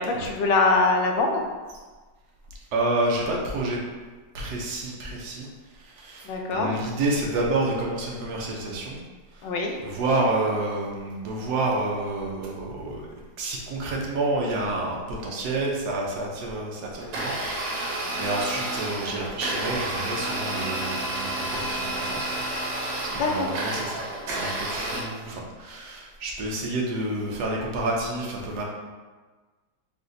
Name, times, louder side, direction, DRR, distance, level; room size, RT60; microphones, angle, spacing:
voice 1, 0.0-1.5 6.2-6.8 9.4-9.8 18.2-18.3 23.2-23.6, left 3 dB, 90° left, 2 dB, 1.3 m, -23 dB
voice 2, 2.7-3.8 4.3-9.0 9.3-9.5 9.8-22.4 23.0-24.0 24.3-28.6, right 2 dB, 70° right, -2 dB, 1.2 m, -29 dB
Domestic sounds home sounds, 17.0-25.0, right 1 dB, 85° right, 1.6 m, -30 dB
4.0 x 2.5 x 3.8 m, 1.3 s
omnidirectional pair, 1.9 m